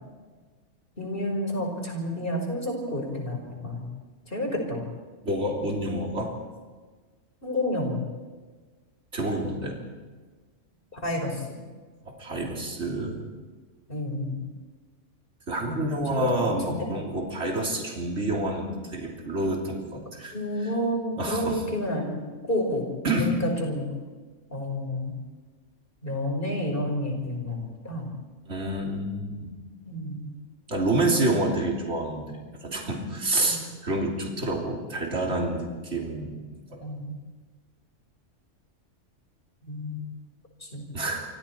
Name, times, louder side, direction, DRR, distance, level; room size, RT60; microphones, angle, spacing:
voice 1, 1.0-3.8 4.3-4.8 7.4-8.0 10.9-11.6 13.9-14.4 15.6-16.9 20.3-22.9 23.2-23.9 24.5-25.1 26.0-28.1 29.9-30.3 32.6-32.7 33.5-33.7 36.8-37.2 39.7-40.0 40.6-40.8, left 1 dB, 45° left, 2 dB, 5.3 m, -30 dB
voice 2, 5.2-6.3 9.1-9.8 12.2-13.3 15.5-20.3 21.2-21.6 23.0-23.4 28.5-29.5 30.7-36.4 36.7-36.8 40.9-41.2, right 1 dB, 65° right, -1 dB, 3.6 m, -28 dB
28.0 x 25.0 x 4.6 m, 1.4 s
omnidirectional pair, 1.3 m